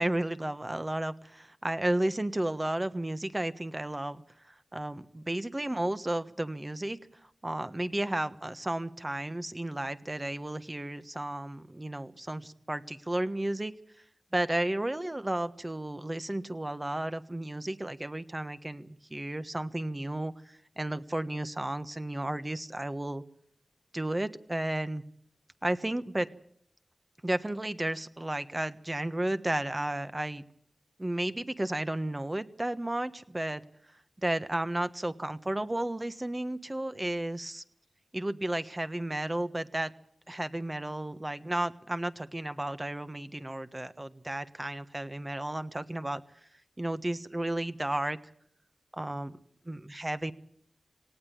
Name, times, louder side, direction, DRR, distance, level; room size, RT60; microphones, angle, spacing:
voice 1, 0.0-4.2 4.5-7.0 7.4-13.7 14.3-23.2 23.9-25.0 25.6-26.3 27.2-30.4 31.0-33.6 34.2-37.6 38.1-39.9 40.3-46.2 46.8-48.2 48.9-49.4 49.6-50.3, right 1 dB, 25° right, 11 dB, 1.3 m, -33 dB
18.5 x 18.5 x 8.7 m, 0.65 s
cardioid pair, 50°, 0 cm